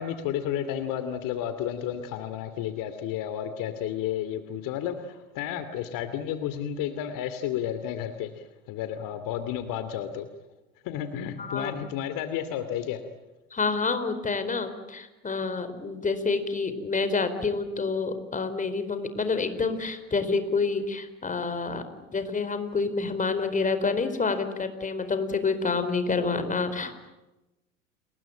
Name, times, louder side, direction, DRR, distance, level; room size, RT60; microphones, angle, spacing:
voice 1, 0.0-10.3 10.8-13.1, left 10 dB, 55° left, 11 dB, 2.7 m, -32 dB
voice 2, 11.4-11.7 13.5-27.1, left 4 dB, 20° left, 10 dB, 4.6 m, -28 dB
30.0 x 21.5 x 8.9 m, 1.0 s
hypercardioid pair, 85°, 40 cm